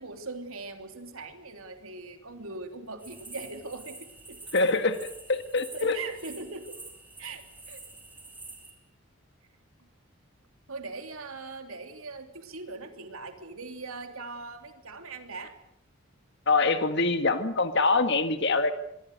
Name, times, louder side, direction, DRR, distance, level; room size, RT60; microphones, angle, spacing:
voice 1, 0.0-4.4 5.7-6.8 7.2-7.8 10.7-15.5, right 3 dB, 85° right, 6 dB, 3.2 m, -40 dB
sound 1, 3.0-8.7, right 3 dB, 10° right, 4.7 m, -47 dB
voice 2, 4.5-6.0 16.5-18.7, left 3 dB, 55° left, 9 dB, 1.8 m, -24 dB
25.5 x 22.0 x 6.6 m, 0.78 s
head